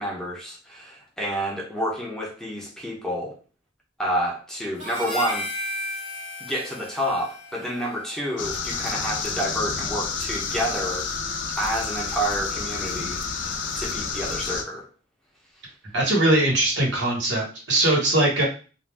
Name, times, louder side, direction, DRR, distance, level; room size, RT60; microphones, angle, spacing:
voice 1, 0.0-3.4 4.0-5.5 6.4-11.1 11.6-14.9, equal, 5° left, 0.7 m, -29 dB
Harmonica, 4.8-9.3, left 1 dB, 45° right, 1.0 m, -35 dB
sound 1, 8.4-14.6, left 5 dB, 75° left, 0.4 m, -30 dB
voice 2, 15.9-18.4, right 1 dB, 80° right, 1.3 m, -21 dB
2.5 x 2.2 x 3.3 m
head